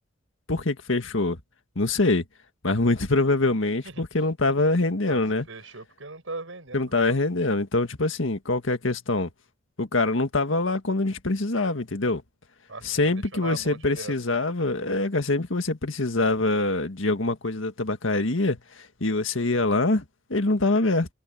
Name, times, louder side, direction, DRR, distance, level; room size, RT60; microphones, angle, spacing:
voice 1, 0.5-1.4 1.8-2.3 2.6-5.5 6.7-9.3 9.8-12.2 12.8-21.1, left 2 dB, 85° left, 1.8 m, -24 dB
voice 2, 5.1-7.2 12.7-14.1, right 3 dB, 90° right, 6.6 m, -39 dB
head